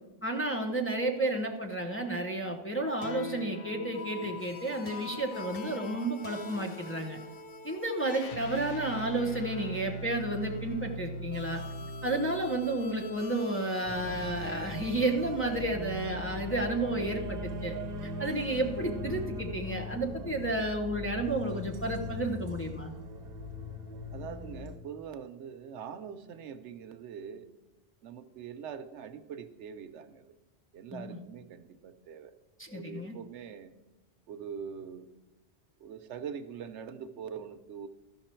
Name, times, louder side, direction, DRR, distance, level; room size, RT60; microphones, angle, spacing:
voice 1, 0.2-7.2 7.6-11.6 12.0-17.8 18.0-22.9 30.9-31.2 32.6-33.2, right 2 dB, 15° left, 1 dB, 0.8 m, -32 dB
sound 1, 3.0-15.5, left 1 dB, 60° left, 0.9 m, -42 dB
sound 2, 13.8-24.8, left 1 dB, 60° right, 1.1 m, -39 dB
voice 2, 24.1-27.5 28.0-30.3 30.7-32.3 32.7-33.7 34.3-35.1 35.8-37.9, right 7 dB, 80° right, 10 dB, 1.0 m, -43 dB
13.5 x 5.8 x 4.4 m, 1.1 s
omnidirectional pair, 1.2 m